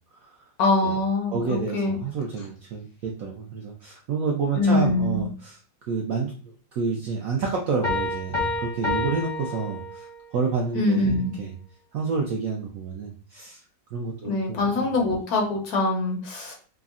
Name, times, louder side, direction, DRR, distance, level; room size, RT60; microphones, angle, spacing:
voice 1, 0.6-2.0 4.6-5.3 10.8-11.3 14.2-16.5, left 2 dB, 65° left, 1 dB, 1.0 m, -23 dB
voice 2, 1.3-5.6 5.9-11.5 11.9-13.6 13.9-14.6, right 4 dB, 75° right, -1 dB, 0.8 m, -29 dB
Piano, 7.8-10.3, left 2 dB, 30° left, 0.6 m, -29 dB
3.5 x 2.0 x 2.4 m, 0.40 s
omnidirectional pair, 1.9 m